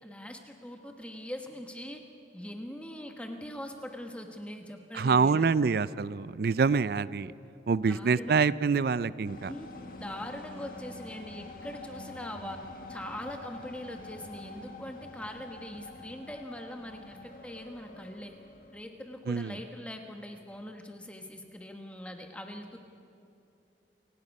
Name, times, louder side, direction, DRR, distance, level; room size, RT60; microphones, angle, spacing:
voice 1, 0.0-2.0 2.3-5.5 7.8-8.4 9.5-9.7 10.0-12.6 12.9-18.3 18.7-22.8, left 1 dB, 5° left, 4 dB, 1.2 m, -42 dB
voice 2, 4.9-7.3 7.7-9.5 19.3-19.6, right 5 dB, 55° right, 18 dB, 0.4 m, -26 dB
sound 1, 9.3-18.9, left 2 dB, 50° left, 1.6 m, -46 dB
28.0 x 18.0 x 5.4 m, 2.7 s
head